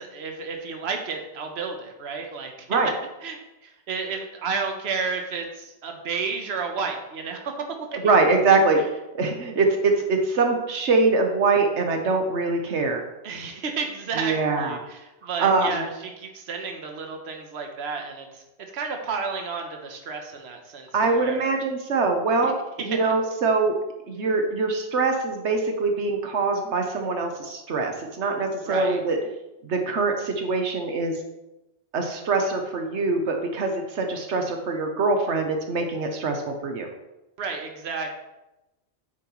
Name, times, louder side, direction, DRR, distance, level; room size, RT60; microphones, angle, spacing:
voice 1, 0.0-2.5 3.2-7.8 13.2-21.4 22.4-22.5 28.7-29.0 37.4-38.1, right 5 dB, 70° right, 3 dB, 1.2 m, -32 dB
voice 2, 8.0-8.8 9.1-13.0 14.2-14.8 15.4-15.9 20.9-23.7 24.1-29.2 29.6-31.2 31.9-36.9, right 3 dB, 85° right, 4 dB, 1.3 m, -23 dB
9.0 x 7.6 x 3.1 m, 0.97 s
omnidirectional pair, 1.1 m